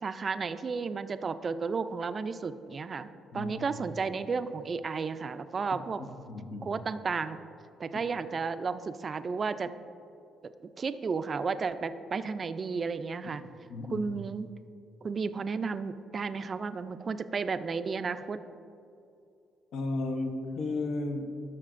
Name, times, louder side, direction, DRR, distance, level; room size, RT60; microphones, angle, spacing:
voice 1, 0.0-6.0 6.6-7.4 7.8-9.7 10.4-10.5 10.8-13.4 13.9-14.5 15.0-18.4, right 5 dB, 40° right, 12 dB, 0.3 m, -33 dB
voice 2, 6.0-6.8 13.7-14.1 19.7-21.4, left 2 dB, 70° left, 5 dB, 0.7 m, -34 dB
12.0 x 6.0 x 2.5 m, 2.6 s
cardioid pair, 85°, 0 cm